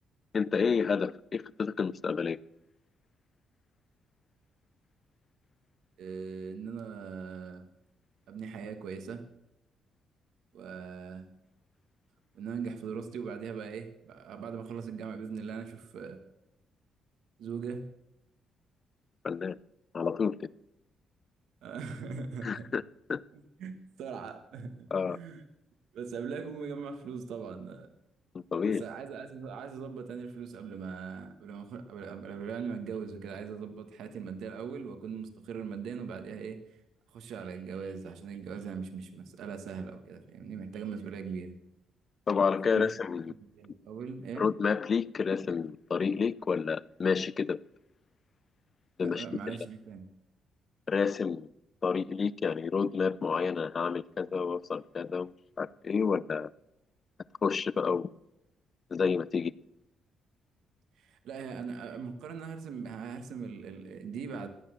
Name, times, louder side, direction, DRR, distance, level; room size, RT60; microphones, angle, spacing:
voice 1, 0.3-2.4 19.2-19.6 19.9-20.4 22.4-22.8 23.1-23.2 24.9-25.2 28.3-28.8 42.3-43.3 44.4-47.6 49.0-49.6 50.9-51.5 51.8-56.5 57.4-58.1 58.9-59.5, left 5 dB, 40° left, 19 dB, 0.5 m, -29 dB
voice 2, 6.0-7.7 8.3-9.2 10.5-11.3 12.3-16.2 17.4-17.8 21.6-22.7 23.3-25.4 25.9-27.9 28.6-36.6 37.1-41.6 42.6-42.9 43.5-44.5 49.0-50.1 61.0-64.5, right 6 dB, 80° right, 7 dB, 1.5 m, -40 dB
16.0 x 9.8 x 7.8 m, 0.89 s
cardioid pair, 90°, 0 cm